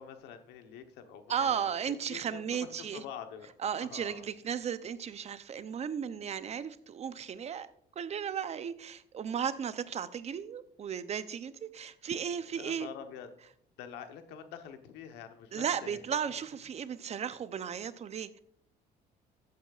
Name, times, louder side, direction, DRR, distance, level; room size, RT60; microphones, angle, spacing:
voice 1, 0.0-1.7 2.1-3.5 3.8-4.2 12.5-13.3 13.8-16.3, left 8 dB, 85° left, 7 dB, 1.1 m, -46 dB
voice 2, 1.3-3.0 3.6-7.7 8.0-12.9 15.5-18.4, right 8 dB, 40° right, 13 dB, 0.6 m, -35 dB
15.0 x 8.5 x 2.4 m, 0.65 s
cardioid pair, 110°, 17 cm